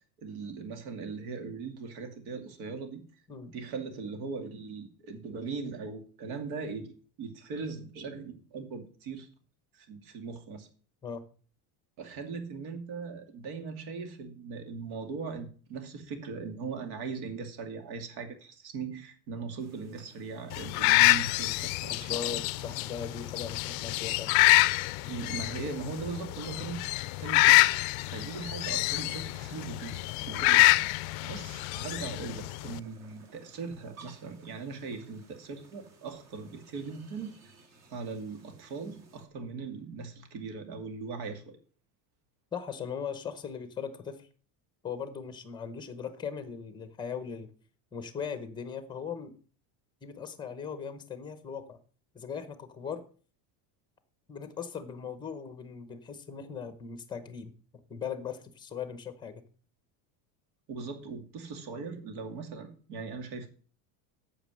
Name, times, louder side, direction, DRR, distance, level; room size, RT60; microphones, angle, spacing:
voice 1, 0.2-3.0 3.5-9.3 9.7-10.7 12.0-22.4 25.0-26.9 27.2-27.7 28.1-29.9 30.2-37.4 37.9-41.6 60.7-63.5, right 4 dB, 65° right, 7 dB, 2.4 m, -39 dB
sound 1, 19.6-39.3, right 3 dB, 35° right, 2.0 m, -57 dB
sound 2, 20.5-32.8, left 23 dB, 70° left, 0.5 m, -26 dB
voice 2, 21.9-24.3 42.5-44.3 44.8-47.5 47.9-49.3 50.0-51.8 52.1-53.0 54.3-57.5 57.9-59.4, left 7 dB, 10° left, 11 dB, 0.8 m, -39 dB
8.9 x 7.1 x 6.3 m, 0.41 s
cardioid pair, 175°, 45 cm